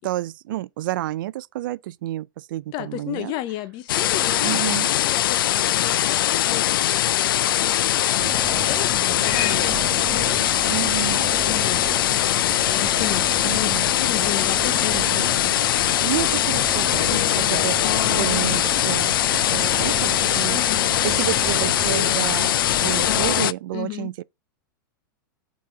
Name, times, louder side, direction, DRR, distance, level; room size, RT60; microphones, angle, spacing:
voice 1, 0.0-3.4 4.4-4.9 10.7-11.3 13.4-13.9 14.9-15.6 16.0-17.8 18.1-20.6 21.0-24.2, right 15 dB, 70° right, 0.4 m, -30 dB
voice 2, 2.7-10.4 11.0-15.4 17.1-17.5 20.4-20.9 23.7-24.1, left 14 dB, 40° left, 0.7 m, -34 dB
sound 1, 3.9-23.5, left 12 dB, 80° left, 0.4 m, -21 dB
sound 2, 8.2-23.4, right 8 dB, 20° right, 0.5 m, -35 dB
Livestock farm animals working animals, 8.6-19.5, left 10 dB, 65° left, 1.3 m, -42 dB
6.0 x 4.1 x 4.7 m
hypercardioid pair, 135°, 11 cm